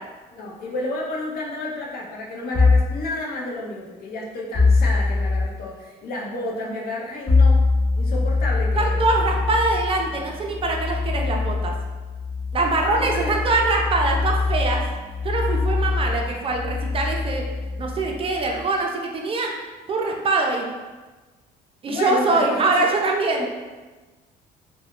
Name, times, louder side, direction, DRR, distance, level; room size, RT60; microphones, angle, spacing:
voice 1, 0.3-7.7 8.0-9.0 13.0-13.5 21.8-22.9 23.4-23.5, left 2 dB, 60° left, -2 dB, 0.7 m, -31 dB
sound 1, 2.5-3.0 4.5-5.5 7.3-18.6, left 3 dB, 25° left, 0.6 m, -23 dB
voice 2, 8.8-11.7 12.5-14.8 15.2-17.4 17.8-19.5 19.9-20.7 21.8-23.5, right 3 dB, 35° right, 1 dB, 0.4 m, -23 dB
2.3 x 2.1 x 3.6 m, 1.3 s
cardioid pair, 110°, 17 cm